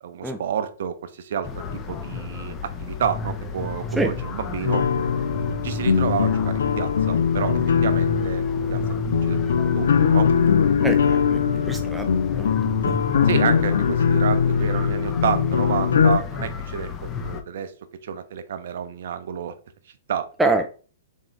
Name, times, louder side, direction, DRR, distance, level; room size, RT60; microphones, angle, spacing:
voice 1, 0.0-4.9 5.6-8.4 8.7-8.8 9.2-10.3 11.1-11.2 13.2-17.7 18.0-19.6 20.1-20.3, right 8 dB, 65° right, 10 dB, 0.6 m, -29 dB
sound 1, 1.4-17.4, left 5 dB, 25° left, 0.7 m, -32 dB
sound 2, 4.7-16.2, left 7 dB, 75° left, 0.4 m, -21 dB
voice 2, 11.6-12.1 12.4-13.0 20.4-20.7, right 2 dB, 5° right, 5 dB, 0.4 m, -24 dB
3.7 x 3.6 x 3.2 m, 0.39 s
hypercardioid pair, 120°, 0 cm